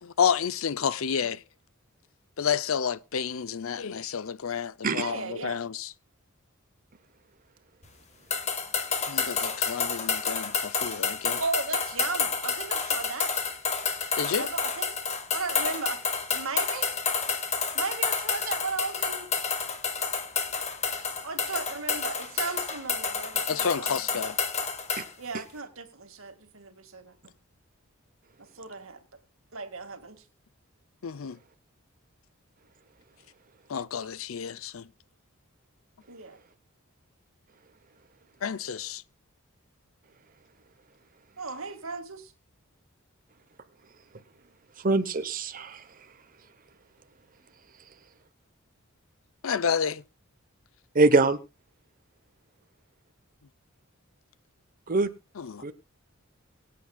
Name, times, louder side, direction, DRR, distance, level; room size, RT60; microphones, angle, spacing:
voice 1, 0.0-1.4 2.4-5.9 9.1-11.4 14.2-14.5 23.5-24.4 31.0-31.4 33.7-34.9 38.4-39.0 49.4-50.0 55.3-55.7, left 7 dB, 70° left, 0.6 m, -30 dB
voice 2, 4.9-5.6 11.4-13.3 14.4-15.0 15.3-16.0 16.3-17.0 17.7-19.3 21.2-24.2 25.2-27.3 28.5-29.0 29.5-30.2 36.1-36.4 41.4-42.3, right 4 dB, 75° right, 2.0 m, -36 dB
sound 1, 8.3-25.1, left 5 dB, 35° left, 1.6 m, -29 dB
voice 3, 44.8-45.8 50.9-51.4 54.9-55.1 55.6-55.7, right 3 dB, 40° right, 1.0 m, -23 dB
23.5 x 8.6 x 2.3 m
head